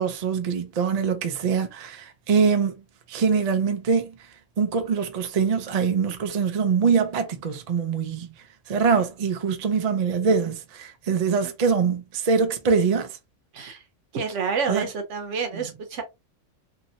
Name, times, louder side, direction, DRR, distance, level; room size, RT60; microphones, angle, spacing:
voice 1, 0.0-2.7 3.1-4.1 4.6-8.3 8.7-13.1 14.7-14.8, right 6 dB, 50° right, 0.5 m, -23 dB
voice 2, 14.1-16.0, right 5 dB, 70° right, 1.1 m, -29 dB
2.7 x 2.7 x 2.7 m
omnidirectional pair, 1.3 m